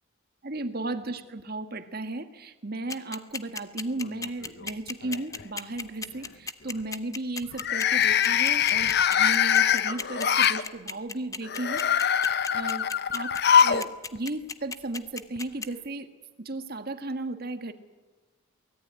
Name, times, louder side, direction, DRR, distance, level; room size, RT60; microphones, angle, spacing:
voice 1, 0.4-16.1 16.4-17.7, right 2 dB, 50° right, 9 dB, 1.6 m, -35 dB
sound 1, 2.9-15.7, left 4 dB, 15° left, 0.9 m, -35 dB
sound 2, 4.0-4.6 5.0-5.4 7.5-10.6 11.4-13.9 14.2-14.3 15.4-15.5, left 8 dB, 50° left, 0.8 m, -23 dB
23.5 x 18.5 x 9.6 m, 1.2 s
head